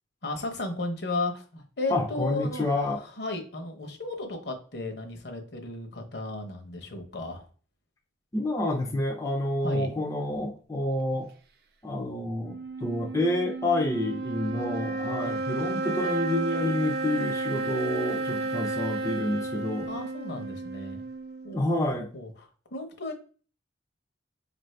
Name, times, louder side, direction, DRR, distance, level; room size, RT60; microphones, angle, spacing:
voice 1, 0.2-2.7 3.2-7.4 9.6-9.9 15.2-15.4 19.9-21.0 21.4-23.1, left 2 dB, 65° left, 4 dB, 0.9 m, -34 dB
voice 2, 1.9-3.0 8.3-11.3 11.8-19.9 21.5-22.1, left 1 dB, 15° left, 0 dB, 0.6 m, -28 dB
sound 1, 12.4-21.8, right 2 dB, 60° right, 0.5 m, -32 dB
4.9 x 2.6 x 3.2 m, 0.39 s
head